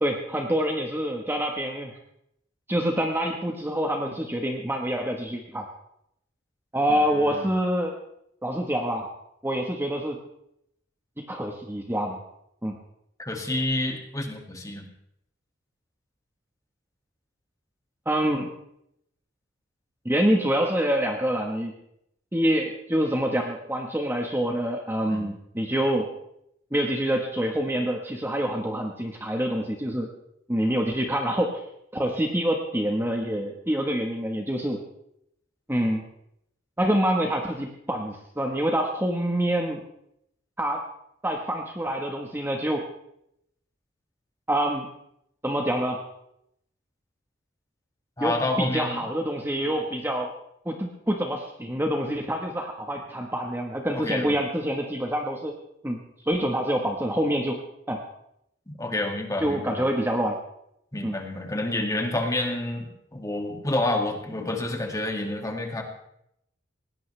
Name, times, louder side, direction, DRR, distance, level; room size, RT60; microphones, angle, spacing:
voice 1, 0.0-2.0 2.7-5.7 6.7-8.0 8.4-9.1 9.4-10.2 11.2-12.2 12.6-12.8 18.0-18.5 20.0-21.7 22.3-26.1 26.7-30.1 30.5-31.6 31.9-34.8 35.7-36.0 36.8-39.8 40.6-40.8 41.2-42.8 44.5-44.9 45.4-46.0 48.2-50.3 50.6-55.5 55.8-57.6 57.9-58.0 59.4-60.4 61.0-61.1, equal, 10° right, 2 dB, 1.3 m, -26 dB
voice 2, 6.9-7.5 13.2-14.9 25.1-25.3 48.2-49.1 53.9-54.4 58.7-59.8 60.9-65.8, left 2 dB, 15° left, 3 dB, 2.2 m, -29 dB
20.0 x 17.0 x 3.3 m, 0.76 s
head